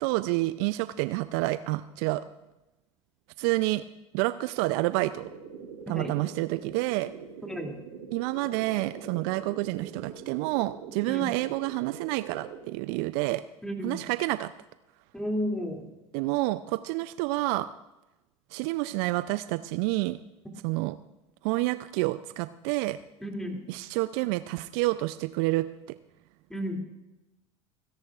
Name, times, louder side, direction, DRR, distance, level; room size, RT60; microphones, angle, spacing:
voice 1, 0.0-2.2 3.4-3.8 4.1-5.3 5.9-7.1 8.1-13.4 13.8-14.5 16.1-17.7 18.5-20.2 20.6-21.0 21.4-23.0 23.7-25.7, right 19 dB, 55° right, 14 dB, 0.4 m, -28 dB
lfo wobble, 5.1-12.6, right 6 dB, 75° right, 3.2 m, -44 dB
voice 2, 13.6-14.0 15.1-15.9 23.2-23.6 26.5-26.8, equal, 5° left, 2 dB, 2.6 m, -32 dB
27.5 x 10.5 x 2.4 m, 1.0 s
hypercardioid pair, 80°, 16 cm